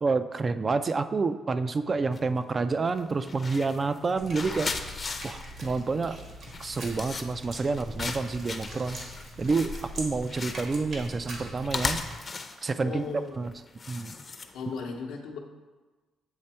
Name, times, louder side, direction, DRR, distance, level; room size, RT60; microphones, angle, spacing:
voice 1, 0.0-4.7 5.2-6.2 6.6-9.0 9.4-12.0 12.6-13.1 13.4-13.5 13.9-14.1, right 4 dB, 35° right, 11 dB, 0.3 m, -28 dB
sound 1, 2.1-2.4 2.9-14.8, left 4 dB, 35° left, 0.6 m, -37 dB
sound 2, 4.2-12.1, right 1 dB, 60° right, 1.4 m, -42 dB
voice 2, 12.8-13.3 14.5-15.4, left 5 dB, 90° left, 1 dB, 0.8 m, -36 dB
7.9 x 3.4 x 4.3 m, 1.3 s
cardioid pair, 90°, 0 cm